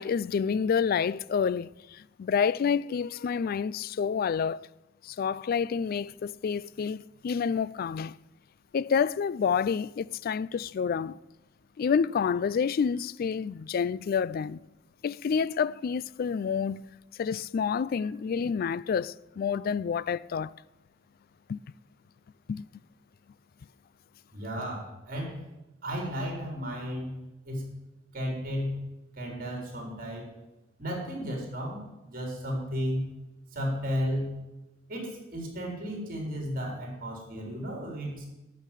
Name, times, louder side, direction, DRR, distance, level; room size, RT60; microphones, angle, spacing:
voice 1, 0.0-4.7 5.0-8.2 8.7-11.2 11.8-14.6 15.0-16.8 17.2-20.5 21.5-21.6 22.5-22.6, left 6 dB, 50° left, 0.3 m, -28 dB
voice 2, 24.3-25.4 25.8-27.1 27.4-27.7 28.1-28.8 29.1-30.3 30.8-33.1 33.5-34.4 34.9-38.3, equal, 45° right, 3.9 m, -33 dB
12.0 x 6.5 x 9.0 m
head